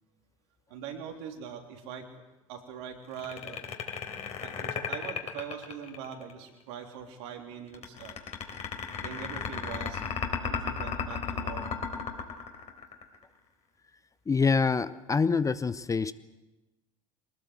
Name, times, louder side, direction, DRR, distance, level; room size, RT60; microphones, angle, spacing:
voice 1, 0.7-2.1 2.5-3.6 4.4-8.2 9.0-10.0 10.4-11.9, right 7 dB, 60° right, 4 dB, 3.6 m, -42 dB
sound 1, 3.1-6.3 7.7-13.2, left 6 dB, 40° left, 3.8 m, -34 dB
voice 2, 14.3-16.1, left 5 dB, 20° left, 15 dB, 0.8 m, -26 dB
24.0 x 19.5 x 8.1 m, 1.1 s
figure-of-eight pair, 65°, 17 cm